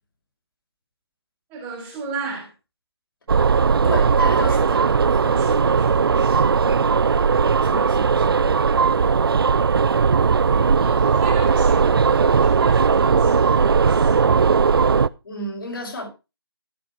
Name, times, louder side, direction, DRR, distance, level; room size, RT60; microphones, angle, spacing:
voice 1, 1.5-2.5 5.2-7.1 10.8-14.7, right 4 dB, 10° right, 2.4 m, -35 dB
sound 1, 3.3-15.1, right 5 dB, 60° right, 0.5 m, -18 dB
voice 2, 3.8-5.0 7.0-7.2 7.6-8.5 15.2-16.1, left 1 dB, 55° left, 5.8 m, -32 dB
14.0 x 5.9 x 4.8 m
figure-of-eight pair, 165°, 14 cm